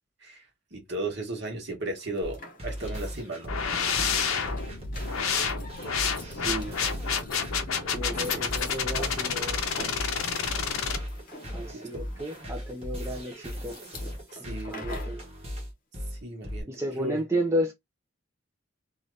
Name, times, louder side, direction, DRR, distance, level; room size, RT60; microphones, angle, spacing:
voice 1, 0.7-3.5 11.7-12.0 14.4-14.9 16.1-17.2, right 2 dB, 55° right, 1.1 m, -35 dB
sound 1, 2.0-15.2, left 2 dB, 40° left, 0.7 m, -45 dB
sound 2, 2.2-16.6, equal, 30° right, 1.0 m, -37 dB
sound 3, 3.5-11.0, left 6 dB, 85° left, 0.6 m, -29 dB
voice 2, 6.2-6.8 7.9-9.6 11.5-13.8 14.7-15.2 16.7-17.7, equal, 15° right, 0.4 m, -32 dB
2.7 x 2.4 x 3.1 m
head